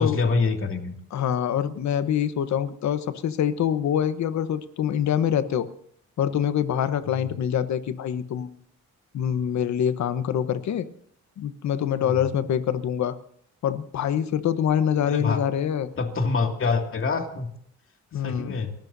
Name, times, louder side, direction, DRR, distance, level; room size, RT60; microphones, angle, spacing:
voice 1, 0.0-1.0 7.1-7.3 12.0-12.2 15.0-15.4 16.0-17.5 18.1-18.7, left 4 dB, 45° left, 4 dB, 2.4 m, -26 dB
voice 2, 1.1-5.7 6.2-8.5 9.1-10.9 11.4-13.2 13.6-15.9 18.1-18.6, left 9 dB, 65° left, 12 dB, 1.1 m, -25 dB
29.5 x 14.0 x 2.7 m, 0.66 s
cardioid pair, 90°, 30 cm